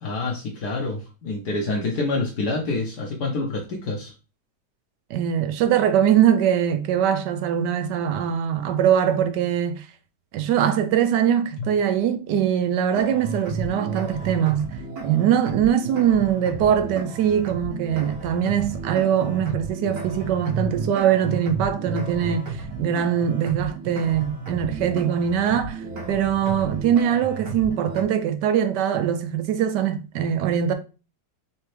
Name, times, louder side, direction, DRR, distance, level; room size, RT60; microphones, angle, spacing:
voice 1, 0.0-4.1 11.6-11.7, left 3 dB, 70° left, 1.3 m, -27 dB
voice 2, 5.1-9.9 10.3-14.6 15.0-30.7, right 9 dB, 80° right, 1.2 m, -22 dB
sound 1, 12.9-28.0, right 3 dB, 60° right, 1.4 m, -33 dB
4.1 x 3.4 x 3.1 m
omnidirectional pair, 1.8 m